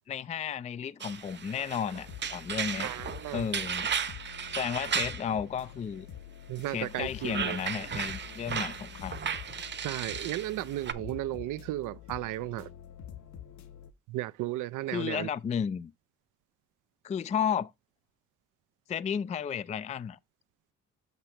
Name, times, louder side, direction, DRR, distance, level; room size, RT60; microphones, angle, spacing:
voice 1, 0.1-2.9 3.3-3.9 4.5-6.1 6.7-9.2 14.9-15.9 17.0-17.7 18.9-20.2, left 7 dB, 25° left, 0.3 m, -33 dB
sound 1, 1.0-5.3 6.6-10.9, right 7 dB, 35° right, 0.8 m, -35 dB
sound 2, 1.9-13.9, left 10 dB, 65° left, 1.1 m, -47 dB
voice 2, 2.8-3.5 6.5-7.6 9.8-12.7 14.1-15.3, right 16 dB, 85° right, 0.5 m, -34 dB
8.0 x 2.9 x 5.7 m
cardioid pair, 90°, 30 cm